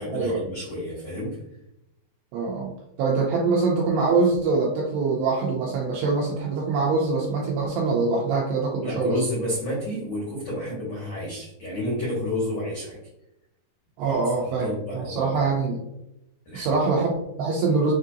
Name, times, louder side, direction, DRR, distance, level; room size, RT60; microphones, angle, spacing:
voice 1, 0.0-1.4 8.7-13.0 14.1-14.2 14.4-15.5 16.4-16.8, equal, 80° left, -6 dB, 1.4 m, -30 dB
voice 2, 2.3-2.7 3.0-9.2 14.0-15.8 16.5-17.9, right 4 dB, 90° right, -2 dB, 2.4 m, -24 dB
7.1 x 2.7 x 2.5 m, 0.85 s
omnidirectional pair, 5.5 m